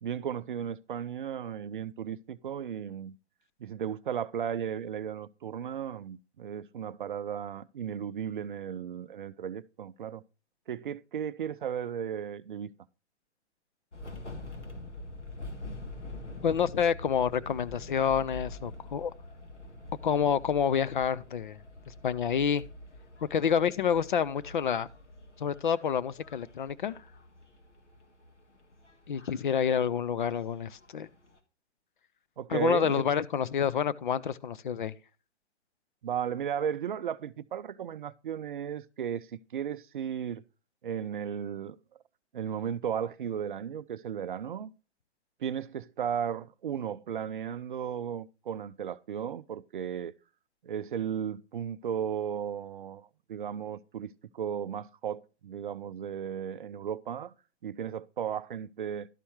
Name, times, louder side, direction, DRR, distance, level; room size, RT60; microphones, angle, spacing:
voice 1, 0.0-3.2 3.6-10.2 10.7-12.7 32.4-33.1 36.0-40.4 40.8-41.8 42.3-44.7 45.4-50.1 50.6-57.3 57.6-59.1, right 8 dB, 45° right, 0.5 m, -35 dB
sound 1, 13.9-31.4, left 2 dB, 80° left, 1.8 m, -46 dB
voice 2, 16.4-19.1 20.0-21.6 21.9-22.6 23.3-24.9 25.4-26.9 29.1-31.1 32.5-34.9, left 7 dB, 45° left, 0.5 m, -28 dB
12.0 x 6.9 x 3.2 m
figure-of-eight pair, 125°, 35 cm